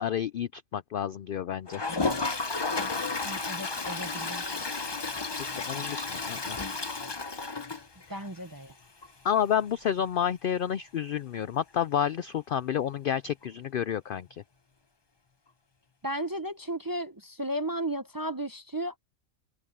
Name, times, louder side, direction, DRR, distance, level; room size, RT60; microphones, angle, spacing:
voice 1, 0.0-1.8 5.4-6.6 8.1-8.3 9.2-14.4, left 9 dB, 75° left, 0.5 m, -30 dB
Toilet flush, 1.7-8.4 8.7-8.8 9.0-9.1 9.4-9.5 12.0-12.1 13.4-13.5, left 3 dB, 20° left, 0.8 m, -32 dB
voice 2, 3.2-4.4 8.1-8.7 16.0-19.0, right 1 dB, 25° right, 0.5 m, -34 dB
omnidirectional pair, 1.4 m